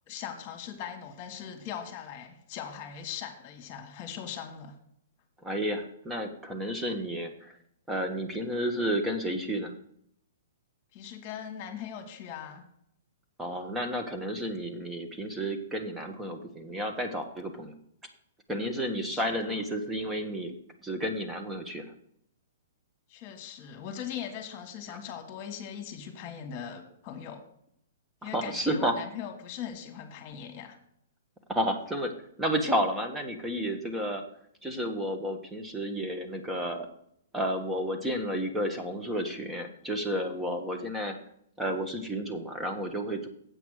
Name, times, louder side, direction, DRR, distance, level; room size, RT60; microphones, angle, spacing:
voice 1, 0.1-4.8 10.9-12.6 19.0-19.6 23.1-27.4 28.2-30.8, left 8 dB, 35° left, 4 dB, 1.6 m, -40 dB
voice 2, 5.4-7.5 7.9-9.7 13.4-17.7 18.5-20.6 20.8-21.9 28.2-29.0 31.5-32.1 32.4-34.2 34.6-36.9 37.3-41.1 41.6-43.3, equal, 10° right, 4 dB, 1.2 m, -31 dB
8.2 x 5.9 x 6.3 m, 0.70 s
hypercardioid pair, 125°, 0 cm